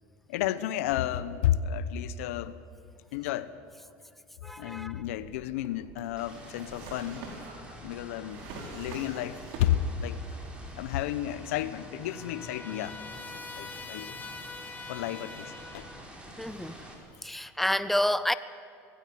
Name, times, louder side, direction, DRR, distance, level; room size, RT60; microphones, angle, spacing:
voice 1, 0.3-2.6 3.1-3.6 4.6-7.3 7.8-10.2 10.8-13.0 13.3-14.2 14.9-15.9, left 11 dB, 85° left, 0.9 m, -32 dB
voice 2, 4.4-5.0 16.4-16.7 17.2-18.3, left 1 dB, ahead, 0.8 m, -29 dB
Drawer open or close, 4.8-10.0 10.3-11.2, right 3 dB, 65° right, 4.7 m, -45 dB
sound 1, 6.2-16.9, equal, 15° right, 4.8 m, -48 dB
Trumpet, 11.3-16.0, left 4 dB, 20° left, 2.6 m, -44 dB
19.5 x 15.5 x 9.5 m
supercardioid pair, 110°, 7 cm